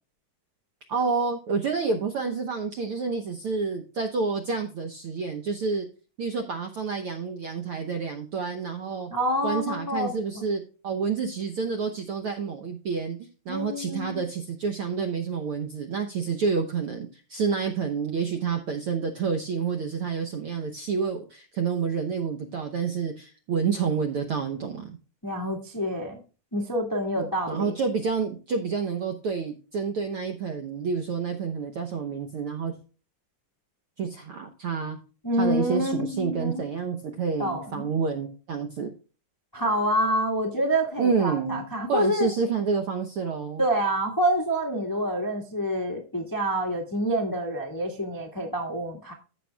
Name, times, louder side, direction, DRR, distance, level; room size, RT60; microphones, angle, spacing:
voice 1, 0.9-5.9 6.2-9.1 9.4-25.0 27.2-32.7 34.0-35.0 35.3-38.9 41.0-43.6, right 5 dB, 75° right, 5 dB, 1.2 m, -29 dB
voice 2, 9.1-10.2 13.5-14.2 25.2-26.2 26.5-27.7 35.2-36.6 37.4-37.9 39.5-42.3 43.6-49.1, equal, 30° left, 2 dB, 0.3 m, -27 dB
15.0 x 6.9 x 2.2 m, 0.35 s
omnidirectional pair, 3.8 m